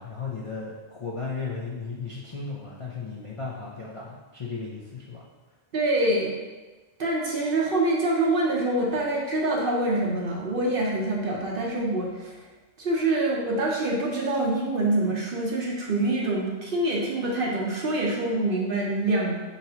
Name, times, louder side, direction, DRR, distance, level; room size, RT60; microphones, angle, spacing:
voice 1, 0.0-5.2, left 4 dB, 50° left, -4 dB, 0.4 m, -35 dB
voice 2, 5.7-6.3 7.0-12.4 12.8-19.4, right 2 dB, 55° right, -2 dB, 0.8 m, -25 dB
4.4 x 4.0 x 2.8 m, 1.2 s
omnidirectional pair, 1.3 m